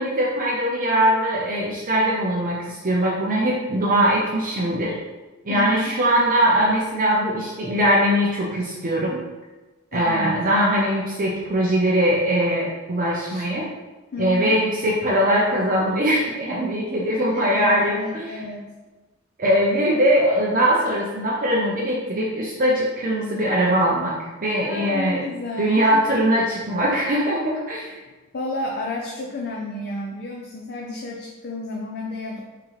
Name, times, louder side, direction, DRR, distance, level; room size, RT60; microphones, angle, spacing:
voice 1, 0.0-5.0 5.4-9.2 9.9-13.7 14.2-18.4 19.4-24.1 24.4-25.2 25.6-27.9, equal, 40° right, -4 dB, 0.7 m, -21 dB
voice 2, 5.5-5.9 9.9-10.4 13.2-13.5 14.1-14.6 17.3-18.7 24.6-26.0 27.8-32.4, left 2 dB, 50° left, -1 dB, 0.5 m, -32 dB
4.5 x 3.7 x 3.1 m, 1.2 s
head